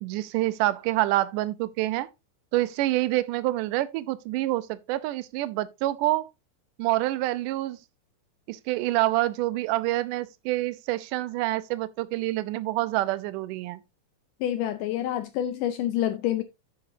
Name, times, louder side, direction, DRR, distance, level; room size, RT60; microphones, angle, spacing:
voice 1, 0.0-2.1 2.5-6.3 6.8-7.8 8.5-13.8, right 16 dB, 75° right, 2.0 m, -27 dB
voice 2, 14.4-16.4, left 12 dB, 75° left, 2.0 m, -27 dB
9.6 x 9.0 x 2.7 m
omnidirectional pair, 4.3 m